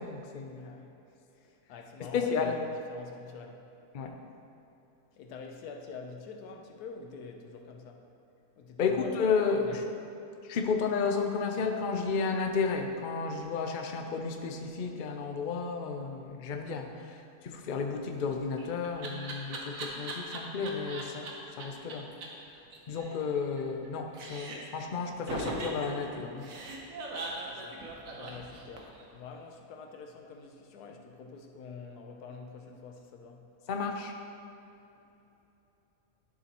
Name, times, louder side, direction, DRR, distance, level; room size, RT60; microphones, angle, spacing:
voice 1, 0.0-0.8 2.0-2.6 3.9-4.2 8.8-9.8 10.4-21.3 21.6-22.1 22.9-26.5 33.7-34.1, left 5 dB, 55° left, 4 dB, 0.5 m, -32 dB
voice 2, 0.6-3.7 5.2-8.1 8.6-9.2 9.6-9.9 19.8-20.1 27.2-33.5, left 5 dB, 90° left, 3 dB, 1.3 m, -47 dB
Laughter, 18.2-21.3 21.6-21.7 21.9-22.0 22.2-22.3 22.6-23.9 24.1-24.8 25.3-29.0, right 2 dB, 65° right, 1.4 m, -39 dB
12.0 x 7.0 x 3.0 m, 2.9 s
omnidirectional pair, 1.6 m